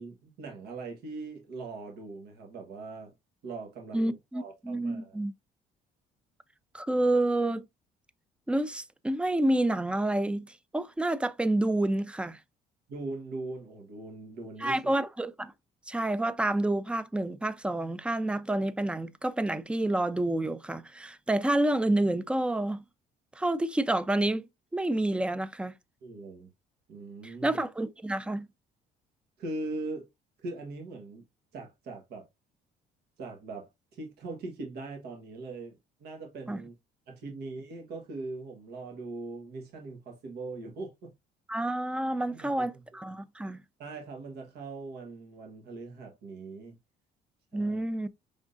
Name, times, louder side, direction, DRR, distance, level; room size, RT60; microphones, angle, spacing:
voice 1, 0.0-3.1 3.4-5.2 12.9-14.8 26.0-26.5 26.9-27.6 29.4-30.1 30.4-31.2 31.5-32.3 33.2-36.7 37.1-41.1 42.3-42.8 43.8-46.8 47.5-47.8, right 3 dB, 75° right, 1.3 m, -41 dB
voice 2, 3.9-5.3 6.7-7.6 8.5-12.4 14.6-15.5 15.9-22.8 23.4-24.4 24.7-25.7 27.2-28.5 36.5-36.6 41.5-43.6 47.5-48.1, right 1 dB, 5° right, 0.4 m, -29 dB
5.2 x 3.6 x 2.5 m
cardioid pair, 110°, 17 cm